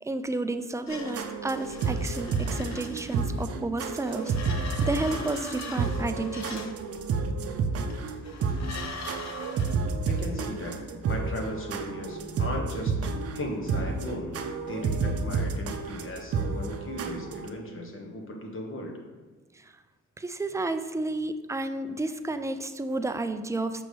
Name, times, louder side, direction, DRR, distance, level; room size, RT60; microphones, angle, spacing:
voice 1, 0.0-6.7 19.5-19.7 20.2-23.8, right 2 dB, 10° right, 9 dB, 0.3 m, -31 dB
sound 1, 0.9-3.5 4.0-6.8 7.9-9.7, left 4 dB, 60° left, 0.9 m, -42 dB
sound 2, 0.9-17.5, right 4 dB, 50° right, 0.6 m, -31 dB
voice 2, 10.0-19.0, left 1 dB, 45° left, 2 dB, 1.3 m, -37 dB
5.9 x 5.2 x 3.3 m, 1.3 s
cardioid pair, 90°, 30 cm